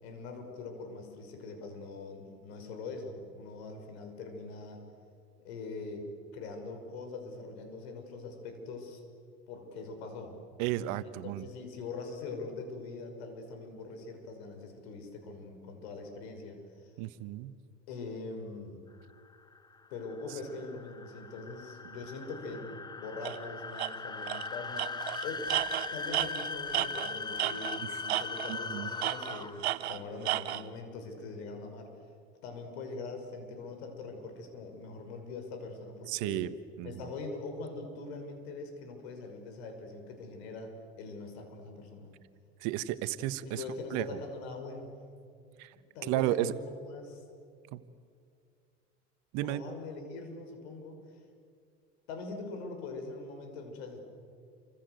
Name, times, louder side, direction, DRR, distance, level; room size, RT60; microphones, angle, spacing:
voice 1, 0.0-4.8 5.4-9.0 9.5-10.4 11.2-16.9 17.9-18.8 19.9-25.5 25.9-32.0 32.4-36.5 36.8-42.1 43.4-45.0 45.7-47.2 49.4-51.2 52.1-54.0, left 3 dB, 75° left, 5 dB, 5.8 m, -42 dB
voice 2, 10.6-11.5 17.0-17.5 28.5-28.9 36.1-36.9 42.6-43.6 43.9-44.0 45.6-45.7 46.0-46.5 47.7-47.8 49.3-49.6, right 15 dB, 65° right, 13 dB, 1.4 m, -33 dB
sound 1, 19.1-29.8, left 4 dB, 15° left, 0.8 m, -40 dB
Tools, 23.2-23.4 23.8-23.9 24.3-24.5 24.8-27.8 28.1-28.6 29.0-30.6, right 14 dB, 85° right, 1.1 m, -33 dB
29.5 x 25.5 x 8.1 m, 2.3 s
hypercardioid pair, 80°, 32 cm